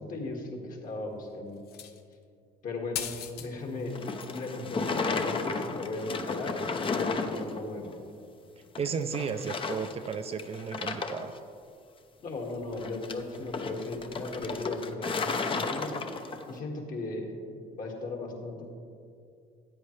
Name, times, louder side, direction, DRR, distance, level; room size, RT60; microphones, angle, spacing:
voice 1, 0.0-1.6 2.6-4.0 4.3-7.9 12.2-15.9 16.5-17.4 17.8-18.6, left 2 dB, 55° left, 0 dB, 2.0 m, -37 dB
sound 1, 1.7-2.1 2.9-3.5 3.8-4.5 5.5-5.6, left 9 dB, 70° left, 0.8 m, -38 dB
sound 2, 3.9-7.6 7.9-8.0 8.7-8.9 9.1-10.1 10.4-11.4 12.7-16.5, left 4 dB, 30° left, 0.7 m, -33 dB
voice 2, 8.8-11.4, right 6 dB, 35° right, 8 dB, 0.5 m, -34 dB
13.5 x 9.2 x 3.3 m, 2.4 s
cardioid pair, 110°, 17 cm